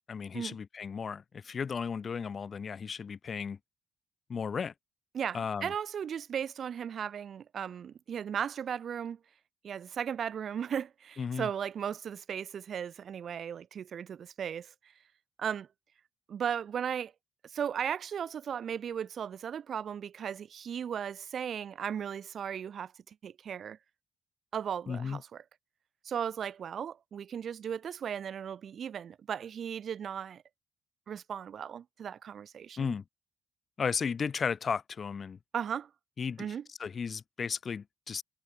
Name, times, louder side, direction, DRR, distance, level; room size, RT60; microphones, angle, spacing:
voice 1, 0.1-3.6 4.3-4.7 5.3-5.7 11.2-11.5 24.9-25.2 32.8-33.0 33.8-35.4 36.2-36.5 36.8-38.2, left 6 dB, 45° left, 7.3 m, -34 dB
voice 2, 5.1-9.2 9.6-14.7 15.4-15.7 16.3-17.1 17.4-23.8 24.5-25.4 26.0-30.4 31.1-32.9 35.5-35.9 36.4-36.7, right 8 dB, 55° right, 2.6 m, -36 dB
cardioid pair, 90°, 0 cm